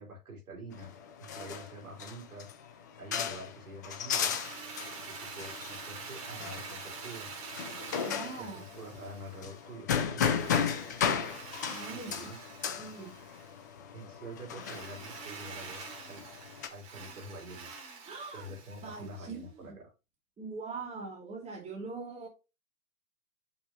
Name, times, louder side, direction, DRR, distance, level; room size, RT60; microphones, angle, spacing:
voice 1, 0.0-4.3 5.1-7.3 8.4-10.7 11.9-12.4 13.9-15.8 16.1-16.3 16.7-19.9, right 1 dB, 80° right, 5.1 m, -47 dB
sound 1, 0.7-16.7, left 7 dB, 15° left, 0.3 m, -35 dB
Drill, 4.1-9.6 10.3-13.6 14.6-19.4, right 5 dB, 40° right, 3.8 m, -46 dB
voice 2, 8.0-8.6 11.7-12.1 12.8-13.2 18.1-18.5 18.8-19.8 20.4-22.3, right 4 dB, 15° right, 2.4 m, -42 dB
8.2 x 6.2 x 2.8 m
hypercardioid pair, 120°, 44 cm